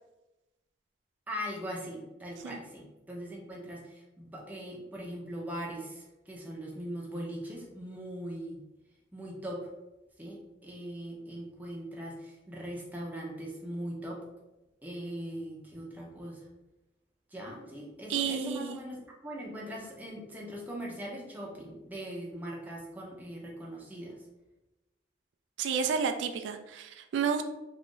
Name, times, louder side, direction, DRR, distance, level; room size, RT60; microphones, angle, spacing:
voice 1, 1.3-8.6 9.1-9.7 10.2-14.2 14.8-16.5 17.3-24.2, equal, 10° right, -3 dB, 0.6 m, -40 dB
voice 2, 18.1-18.8 25.6-27.5, right 6 dB, 85° right, 7 dB, 0.3 m, -31 dB
3.0 x 2.5 x 3.7 m, 1.0 s
head